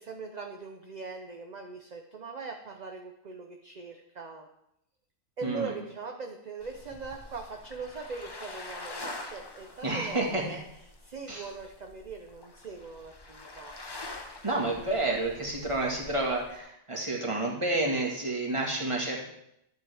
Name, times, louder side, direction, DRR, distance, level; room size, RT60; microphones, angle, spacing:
voice 1, 0.0-4.5 5.4-10.6 11.0-13.7, right 4 dB, 40° right, 3 dB, 0.7 m, -41 dB
voice 2, 5.4-5.7 9.8-10.4 11.3-11.5 14.4-19.2, right 2 dB, 25° right, -2 dB, 1.8 m, -30 dB
sound 1, 6.6-16.6, left 2 dB, 25° left, 0.7 m, -45 dB
12.0 x 7.9 x 3.4 m, 0.79 s
omnidirectional pair, 1.4 m